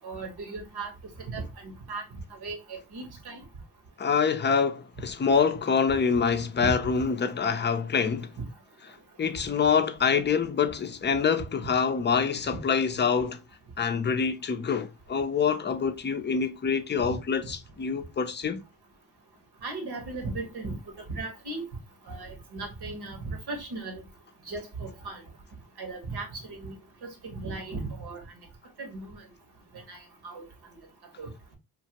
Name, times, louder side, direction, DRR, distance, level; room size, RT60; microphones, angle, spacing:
voice 1, 0.0-0.9 1.3-3.4 6.6-6.7 11.6-11.7 17.0-17.2 19.6-20.8 21.1-21.6 22.1-24.0 24.5-25.2 25.8-28.2 28.8-29.2 29.7-30.5 31.2-31.3, right 3 dB, 70° right, 1.1 m, -37 dB
voice 2, 4.0-8.3 9.2-13.4 13.8-18.6, left 6 dB, 30° left, 0.4 m, -26 dB
2.8 x 2.5 x 2.8 m
cardioid pair, 70°, 40 cm